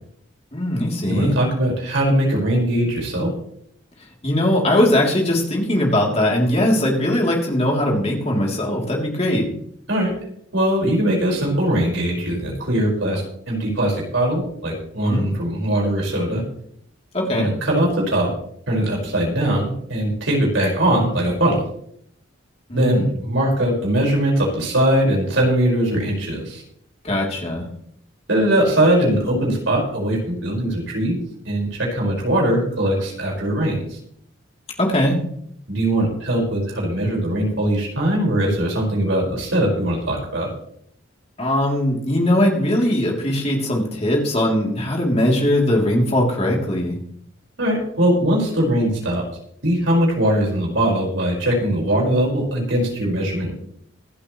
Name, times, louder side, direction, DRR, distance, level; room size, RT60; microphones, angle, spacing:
voice 1, 0.5-1.4 4.2-9.5 15.0-15.2 17.1-17.5 22.7-23.1 27.0-27.7 34.8-35.2 41.4-47.0, left 1 dB, 30° left, -1 dB, 3.3 m, -20 dB
voice 2, 1.1-3.3 9.9-10.1 10.5-16.4 17.2-18.3 18.7-21.5 22.7-26.6 28.3-31.2 31.5-34.0 35.7-40.5 47.6-49.2 49.6-53.5, right 1 dB, 70° right, -2 dB, 5.4 m, -21 dB
25.5 x 8.7 x 3.2 m, 0.67 s
head